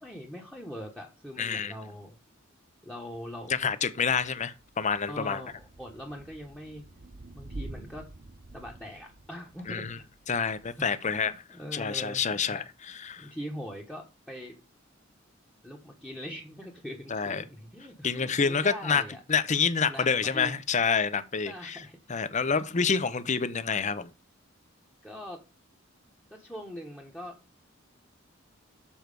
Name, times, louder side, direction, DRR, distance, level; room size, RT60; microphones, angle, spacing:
voice 1, 0.0-2.1 2.8-3.5 5.1-6.9 7.3-8.0 8.5-10.0 10.8-12.6 13.2-14.6 15.6-19.2 19.8-20.5 21.4-22.0 25.0-25.4 26.3-27.4, equal, 5° left, 1.2 m, -42 dB
voice 2, 1.4-1.7 3.5-5.4 9.7-10.0 10.3-11.3 11.7-13.3 17.1-17.4 18.0-19.0 19.3-21.8 22.1-24.1, left 6 dB, 40° left, 0.7 m, -28 dB
Thunder / Rain, 3.1-11.4, right 2 dB, 45° right, 1.0 m, -48 dB
7.2 x 4.6 x 6.6 m
head